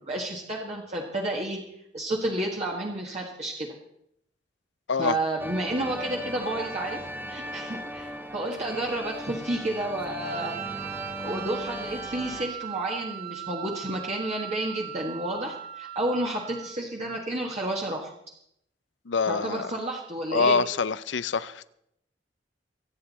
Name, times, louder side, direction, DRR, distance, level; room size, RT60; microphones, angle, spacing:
voice 1, 0.0-1.6 1.9-3.7 5.0-7.0 7.3-10.6 11.2-18.1 19.3-20.6, right 1 dB, 40° right, -2 dB, 1.7 m, -31 dB
sound 1, 5.4-12.5, equal, 10° right, 1.2 m, -37 dB
Wind instrument woodwind instrument, 10.2-16.8, right 13 dB, 60° right, 1.1 m, -39 dB
voice 2, 19.1-19.7 20.3-21.7, left 5 dB, 80° left, 16 dB, 0.6 m, -25 dB
24.5 x 9.0 x 4.2 m, 0.74 s
head